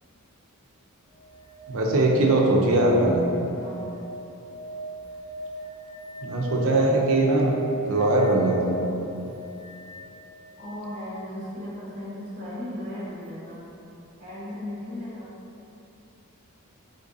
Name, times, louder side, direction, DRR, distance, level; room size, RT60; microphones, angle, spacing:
sound 1, 1.1-10.9 13.2-13.3, right 2 dB, 30° left, 0.9 m, -39 dB
voice 1, 1.7-3.2 6.2-7.5 7.8-8.8, right 2 dB, 65° right, -1 dB, 0.4 m, -21 dB
voice 2, 10.6-13.7 14.2-15.3, left 1 dB, 35° right, -8 dB, 0.8 m, -36 dB
3.8 x 2.5 x 2.5 m, 2.8 s
head